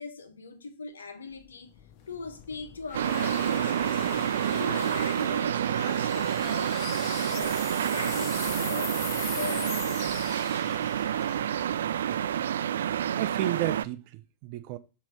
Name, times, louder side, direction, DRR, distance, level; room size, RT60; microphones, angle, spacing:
voice 1, 0.0-1.7 2.1-4.0 4.5-10.1, left 4 dB, 70° left, 1.3 m, -40 dB
sound 1, 1.4-12.6, left 10 dB, 45° left, 1.0 m, -41 dB
sound 2, 2.9-13.9, right 10 dB, 65° right, 0.3 m, -28 dB
voice 2, 13.0-14.8, right 14 dB, 45° right, 0.7 m, -33 dB
7.6 x 5.6 x 4.8 m
figure-of-eight pair, 90°, 0 cm